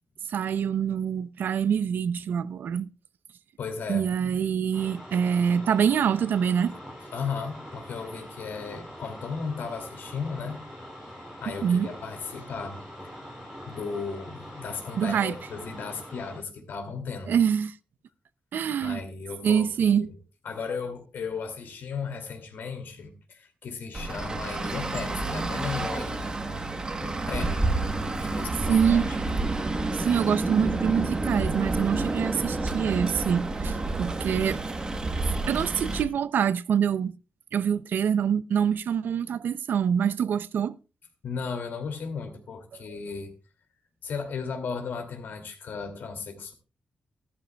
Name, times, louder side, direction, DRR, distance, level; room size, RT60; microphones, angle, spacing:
voice 1, 0.3-2.9 3.9-6.7 11.5-11.9 15.0-15.4 17.3-17.7 18.5-19.0 19.4-20.1 28.7-29.1 29.9-34.6 35.5-37.1 37.5-40.8, right 8 dB, 75° right, 0.5 m, -25 dB
voice 2, 3.6-4.1 7.1-10.6 11.4-12.8 13.7-17.3 18.8-20.1 20.4-27.7 28.2-29.3 41.2-43.3 44.0-46.5, left 5 dB, 80° left, 2.5 m, -35 dB
sound 1, 4.7-16.4, equal, ahead, 6.8 m, -43 dB
Traffic noise roadway noise, 23.9-36.0, right 2 dB, 25° right, 1.1 m, -29 dB
14.0 x 12.5 x 2.3 m
wide cardioid pair, 170°, 3 cm